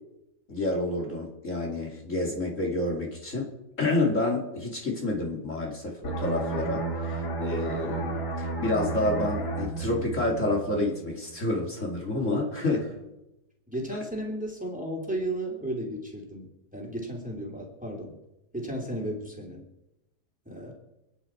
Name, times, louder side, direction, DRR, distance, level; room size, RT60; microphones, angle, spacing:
voice 1, 0.5-3.5 3.8-13.0, left 2 dB, 50° left, -1 dB, 3.0 m, -29 dB
sound 1, 6.0-11.4 11.7-12.0, right 3 dB, 80° left, 3.1 m, -32 dB
voice 2, 12.2-13.0 13.7-18.2 18.5-19.6 20.4-20.7, right 1 dB, 5° right, 1 dB, 3.1 m, -34 dB
27.5 x 10.5 x 4.5 m, 0.94 s
omnidirectional pair, 1.7 m